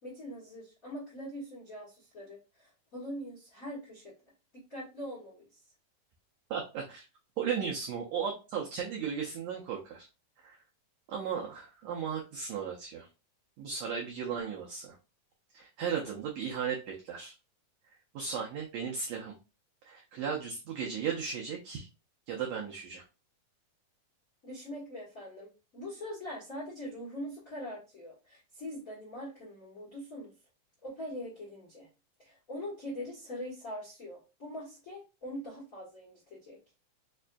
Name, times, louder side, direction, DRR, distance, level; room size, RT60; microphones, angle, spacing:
voice 1, 0.0-4.1 4.7-5.6 24.4-30.3 30.8-31.9 32.2-36.6, equal, 70° left, -6 dB, 0.7 m, -42 dB
voice 2, 6.5-7.0 7.4-10.1 10.4-10.6 11.1-13.1 13.6-15.0 15.5-17.3 18.1-19.3 19.8-21.9 22.3-23.0, right 7 dB, 90° right, -1 dB, 1.5 m, -35 dB
5.3 x 2.5 x 2.2 m, 0.29 s
omnidirectional pair, 3.9 m